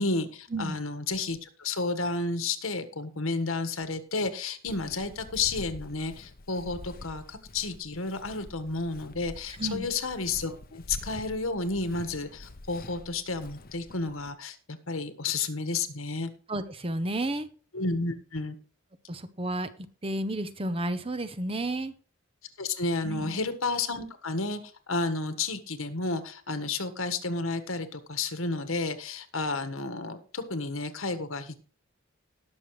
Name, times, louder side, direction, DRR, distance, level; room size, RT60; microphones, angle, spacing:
voice 1, 0.0-16.3 17.7-18.6 22.6-24.6 24.9-31.6, left 3 dB, 75° left, 10 dB, 1.6 m, -31 dB
Walk footsteps, 4.7-14.3, left 2 dB, 45° left, 0.9 m, -46 dB
voice 2, 16.5-17.5 19.1-19.7 20.0-21.9 23.0-23.4, right 1 dB, 25° right, 12 dB, 0.8 m, -31 dB
19.0 x 6.8 x 3.2 m, 0.40 s
head